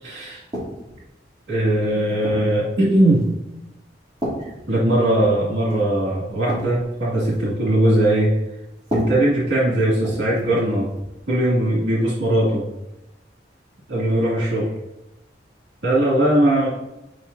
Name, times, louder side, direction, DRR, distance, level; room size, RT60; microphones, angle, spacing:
voice 1, 0.0-0.4 1.5-3.2 4.4-8.3 8.9-10.9 11.3-12.7 13.9-14.7 15.8-16.7, right 1 dB, 75° right, -6 dB, 2.4 m, -19 dB
sound 1, 0.5-1.0 1.7-2.6 3.2-3.5 4.2-5.4 5.7-5.9 6.2-7.5 8.8-10.6 10.9-11.2 12.3-12.4, equal, 25° right, 2.7 m, -32 dB
9.6 x 5.3 x 2.7 m, 0.93 s
head